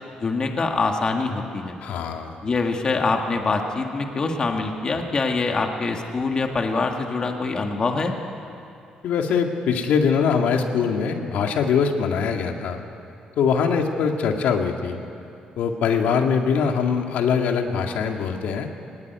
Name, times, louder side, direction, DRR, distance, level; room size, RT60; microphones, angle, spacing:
voice 1, 0.2-1.8 2.4-8.2, left 3 dB, 35° left, 3 dB, 2.0 m, -24 dB
voice 2, 1.8-2.3 9.0-12.8 13.4-15.0 15.6-18.7, left 6 dB, 85° left, 4 dB, 2.0 m, -22 dB
21.5 x 19.5 x 9.4 m, 2.7 s
cardioid pair, 125°, 2 cm